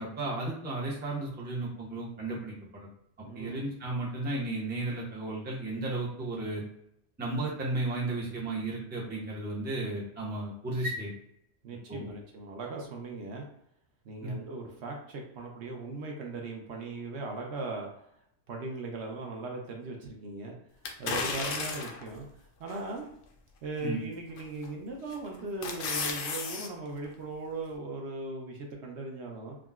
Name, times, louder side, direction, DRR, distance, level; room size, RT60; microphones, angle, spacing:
voice 1, 0.0-2.9 3.2-6.6 7.2-11.1 11.9-12.1 14.2-14.3 23.8-24.0, right 2 dB, 10° right, -4 dB, 0.5 m, -34 dB
voice 2, 3.2-3.7 11.6-13.5 14.0-17.9 18.5-20.6 21.0-22.3 22.6-23.1 23.6-29.6, right 3 dB, 65° right, 0 dB, 0.8 m, -38 dB
sound 1, 20.8-22.1 22.7-22.8 24.4-24.7 25.1-26.7 27.0-27.1, left 4 dB, 60° left, 0.6 m, -33 dB
3.7 x 2.0 x 2.3 m, 0.75 s
omnidirectional pair, 1.3 m